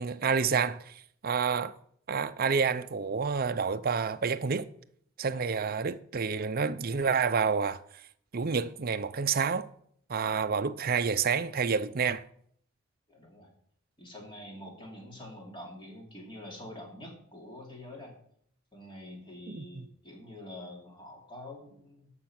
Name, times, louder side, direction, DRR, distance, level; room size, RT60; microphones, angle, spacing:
voice 1, 0.0-1.7 2.1-4.7 5.2-7.8 8.3-9.7 10.1-12.2 19.5-19.9, right 5 dB, 45° right, 0.6 m, -29 dB
voice 2, 13.1-13.5 14.0-18.2 18.7-22.1, left 1 dB, 20° left, 2.8 m, -46 dB
13.5 x 5.7 x 6.0 m
head